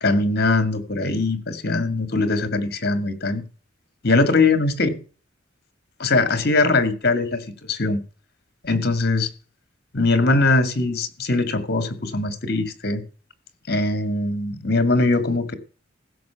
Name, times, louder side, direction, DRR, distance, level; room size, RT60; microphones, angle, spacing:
voice 1, 0.0-3.4 4.0-5.0 6.0-8.0 8.6-9.3 9.9-13.0 13.7-15.5, left 3 dB, 50° left, 2.1 m, -21 dB
15.5 x 6.8 x 5.9 m
head